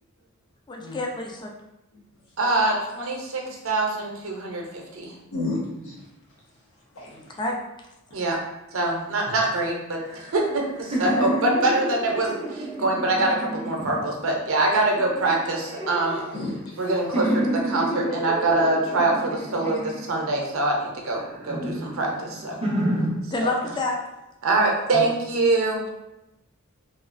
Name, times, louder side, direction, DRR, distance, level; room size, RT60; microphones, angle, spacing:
voice 1, 0.7-1.5 7.1-7.6 13.8-14.0 23.3-24.0, left 2 dB, 20° left, 0 dB, 0.4 m, -28 dB
voice 2, 2.4-5.1 8.1-8.4 8.7-12.3 12.8-16.2 16.8-22.6 23.4-23.5 24.4-25.9, right 2 dB, 70° right, 0 dB, 0.6 m, -24 dB
voice 3, 5.3-6.0 6.9-7.2 12.9-13.1 16.3-16.8 24.9-25.0, left 2 dB, 80° left, -5 dB, 1.0 m, -31 dB
sound 1, 10.0-14.3 14.9-16.8 17.1-20.5 21.0-23.1, right 1 dB, 25° right, 0.6 m, -30 dB
3.0 x 2.4 x 2.5 m, 0.92 s
head